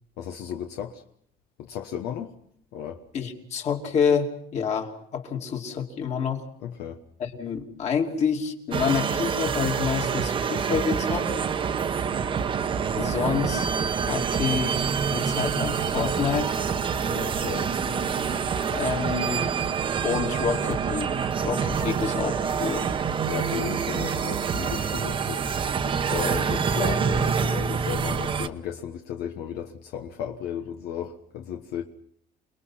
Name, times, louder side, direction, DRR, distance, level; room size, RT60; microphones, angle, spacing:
voice 1, 0.2-1.0 1.6-2.3 2.7-3.0 6.6-7.0 17.1-18.1 23.3-25.5 26.1-31.8, left 9 dB, 70° left, 1.4 m, -34 dB
voice 2, 3.1-6.4 7.2-11.3 13.0-13.7 14.0-16.6 18.7-19.5 20.0-21.1 21.4-22.9, left 6 dB, 40° left, 2.9 m, -28 dB
sound 1, 8.7-28.5, right 6 dB, 30° right, 1.0 m, -26 dB
29.0 x 20.5 x 5.9 m
cardioid pair, 155°, 17 cm